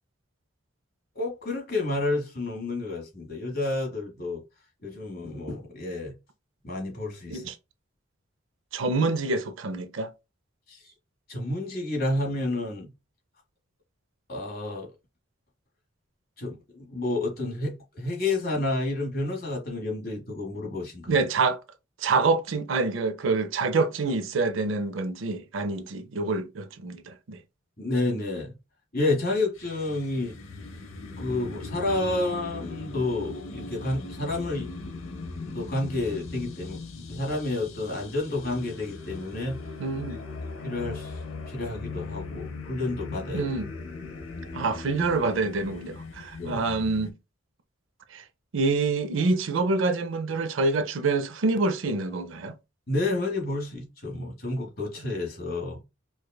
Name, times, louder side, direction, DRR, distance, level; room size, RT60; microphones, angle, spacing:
voice 1, 1.1-4.4 4.8-6.1 6.6-7.5 10.7-10.8 11.3-12.9 14.3-14.9 16.4-21.2 27.8-28.5 28.9-30.4 31.2-34.7 35.5-36.8 37.1-39.6 40.6-41.2 41.5-43.5 46.4-46.6 52.9-55.8, left 2 dB, 45° left, 1.2 m, -30 dB
voice 2, 8.7-10.1 21.1-21.6 22.0-27.4 39.8-40.2 43.3-43.6 44.5-47.1 48.1-48.2 48.5-52.5, right 3 dB, 70° right, 0.5 m, -26 dB
sound 1, 29.6-47.1, left 3 dB, 75° left, 0.6 m, -39 dB
4.7 x 2.3 x 2.2 m
head